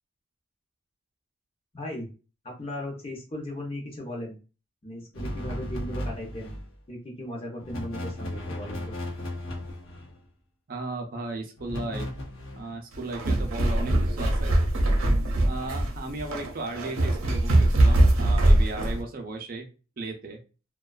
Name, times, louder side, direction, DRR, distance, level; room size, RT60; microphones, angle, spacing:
voice 1, 1.7-2.1 2.4-4.4 4.8-6.5 6.9-9.0, left 1 dB, 30° left, 0 dB, 0.6 m, -37 dB
sound 1, 5.1-6.7 7.6-10.2 11.6-12.7, left 1 dB, 90° left, 0.8 m, -35 dB
voice 2, 10.7-12.1 12.5-14.6 15.5-19.7 20.0-20.4, right 2 dB, 45° right, 4 dB, 0.5 m, -35 dB
sound 2, 12.9-19.0, right 1 dB, 85° right, 0.6 m, -22 dB
2.4 x 2.2 x 2.3 m, 0.33 s
head